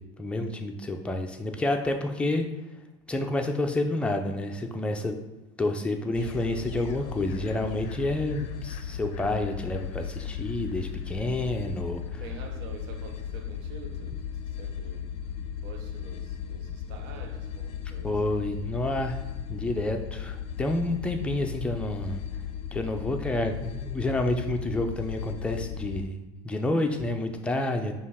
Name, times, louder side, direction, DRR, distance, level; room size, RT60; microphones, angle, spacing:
voice 1, 0.2-2.5 3.1-5.2 5.6-12.2 18.0-19.2 19.5-22.2 22.7-27.9, left 1 dB, 5° left, 0.5 m, -29 dB
sound 1, 6.1-26.0, left 8 dB, 55° left, 0.5 m, -36 dB
voice 2, 12.2-15.2 15.6-18.2, right 4 dB, 70° right, 0.7 m, -46 dB
5.1 x 2.4 x 3.5 m
supercardioid pair, 125°, 15 cm